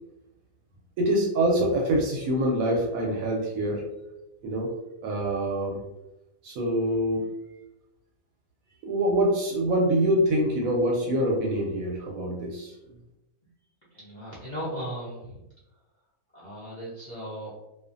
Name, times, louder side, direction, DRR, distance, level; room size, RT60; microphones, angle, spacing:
voice 1, 1.0-3.8 4.4-4.7 5.0-5.8 6.4-7.3 8.8-12.7, right 1 dB, 75° right, -1 dB, 1.0 m, -25 dB
voice 2, 13.9-15.4 16.3-17.6, equal, 55° left, -8 dB, 0.5 m, -37 dB
2.4 x 2.4 x 2.5 m, 0.95 s
omnidirectional pair, 1.6 m